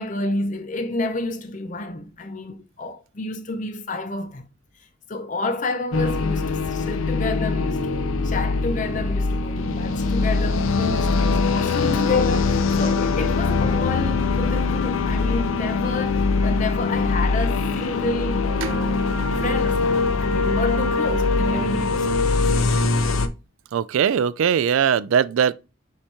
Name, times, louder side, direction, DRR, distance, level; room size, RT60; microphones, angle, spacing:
voice 1, 0.0-4.4 5.1-19.1 19.4-22.5, left 2 dB, 40° left, 0.6 m, -29 dB
sound 1, 5.9-23.3, left 3 dB, 80° left, 0.5 m, -22 dB
voice 2, 18.6-19.1 23.7-25.5, right 8 dB, 75° right, 0.3 m, -21 dB
5.4 x 2.9 x 3.4 m
head